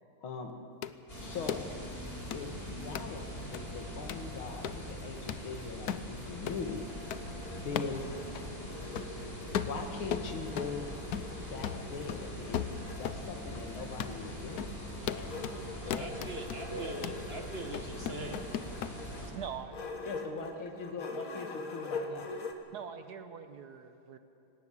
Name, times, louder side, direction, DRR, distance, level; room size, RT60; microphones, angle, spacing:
voice 1, 0.2-0.5 1.2-1.7 2.3-6.9 7.6-8.5 9.5-10.9 11.4-16.1 20.1-22.3, left 4 dB, 85° left, 5 dB, 2.5 m, -41 dB
sound 1, 0.8-1.0 1.5-1.7 2.3-2.4 2.9-3.1 3.5-3.6 4.1-4.3 4.6-4.8 5.3-5.4 5.9-6.1 6.5-6.6 7.1-7.2 7.8-8.0 8.3-8.5 9.0-9.2 9.5-10.8 11.1-11.4 11.6-13.2 13.5-13.6 14.0-14.2 14.6-14.7 15.1-15.6 15.9-16.6 17.0-17.2 17.7-18.9, left 9 dB, 65° left, 1.0 m, -36 dB
sound 2, 1.1-19.3, equal, 25° left, 4.5 m, -42 dB
sound 3, 6.4-9.7 10.1-13.1 14.0-22.5, left 3 dB, 45° left, 1.7 m, -44 dB
voice 2, 15.6-18.5, right 2 dB, 35° right, 4 dB, 1.3 m, -42 dB
voice 3, 19.3-19.8 22.7-24.2, right 7 dB, 60° right, 9 dB, 1.2 m, -43 dB
19.0 x 17.5 x 8.5 m, 2.9 s
omnidirectional pair, 2.2 m